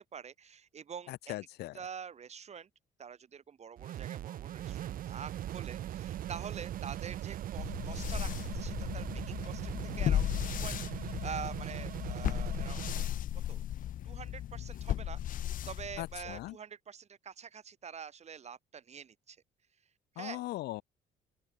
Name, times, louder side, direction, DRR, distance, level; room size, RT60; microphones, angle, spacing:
voice 1, 0.1-1.4 1.7-2.7 3.0-10.3 10.6-12.9 13.5-13.6 14.0-19.4 20.1-20.4, right 7 dB, 40° right, 6.9 m, -46 dB
voice 2, 1.1-1.8 16.0-16.6 20.2-20.8, left 17 dB, 75° left, 1.2 m, -39 dB
sound 1, 3.8-13.1, right 12 dB, 55° right, 1.0 m, -40 dB
sound 2, 7.6-16.5, left 11 dB, 55° left, 0.8 m, -36 dB
open air
cardioid pair, 110°, 17 cm